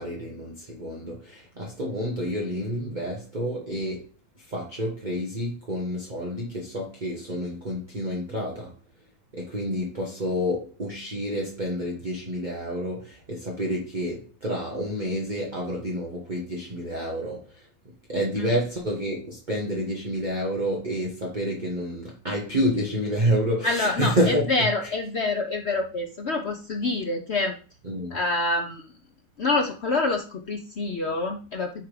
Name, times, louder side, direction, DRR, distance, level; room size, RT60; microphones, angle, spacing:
voice 1, 0.0-4.1 4.4-8.7 9.3-24.9 27.8-28.2, equal, 25° right, 1.2 m, -29 dB
voice 2, 23.6-27.5 28.1-28.8 29.4-31.8, left 3 dB, 80° left, 0.5 m, -26 dB
9.1 x 3.6 x 4.9 m
omnidirectional pair, 2.2 m